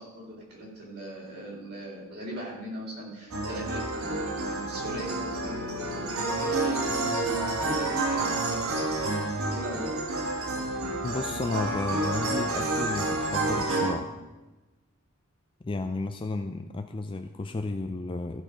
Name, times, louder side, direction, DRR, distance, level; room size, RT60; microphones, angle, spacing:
voice 1, 0.0-7.3 7.6-8.9 9.5-9.9, equal, 50° right, -4 dB, 3.9 m, -39 dB
sound 1, 3.3-13.9, right 2 dB, 75° right, 1.4 m, -29 dB
voice 2, 11.0-14.1 15.6-18.4, left 2 dB, 25° left, 6 dB, 0.4 m, -32 dB
14.5 x 6.2 x 5.1 m, 1.1 s
head